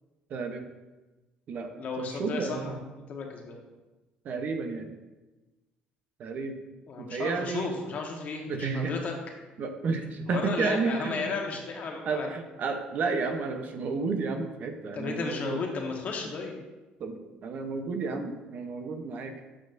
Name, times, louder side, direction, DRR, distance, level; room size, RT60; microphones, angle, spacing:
voice 1, 0.3-0.7 1.5-1.7 2.0-2.9 4.2-4.9 6.2-6.6 7.0-7.7 8.5-8.9 9.6-11.3 12.1-15.6 17.0-19.3, right 4 dB, 55° right, 5 dB, 0.8 m, -31 dB
voice 2, 1.8-2.8 3.1-3.6 6.9-9.1 10.3-12.3 14.9-16.6, left 4 dB, 50° left, 1 dB, 1.3 m, -34 dB
7.7 x 6.1 x 2.6 m, 1.1 s
cardioid pair, 95°, 3 cm